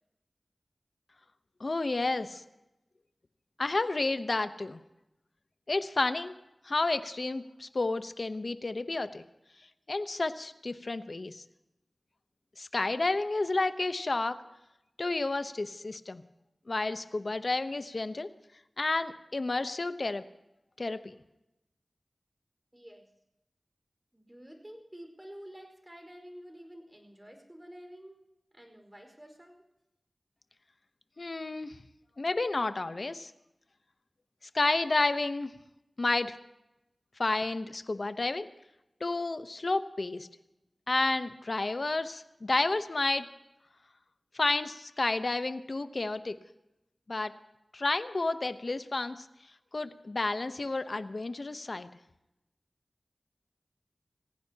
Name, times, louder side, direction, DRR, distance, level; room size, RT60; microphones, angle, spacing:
voice 1, 1.6-2.4 3.6-4.8 5.7-6.3 6.6-9.2 9.9-11.4 12.6-14.4 15.0-16.2 16.7-18.3 18.8-20.2 20.8-21.1 31.2-31.8 32.2-33.3 34.5-35.5 36.0-36.3 37.2-38.5 39.0-40.3 40.9-43.3 44.3-46.4 47.1-47.3 47.7-49.3 49.7-51.9, left 2 dB, 60° left, 11 dB, 0.9 m, -31 dB
voice 2, 22.7-23.1 24.1-28.2 28.5-29.6, equal, 20° right, 4 dB, 4.8 m, -49 dB
29.0 x 16.0 x 2.9 m, 0.89 s
wide cardioid pair, 50°, 0 cm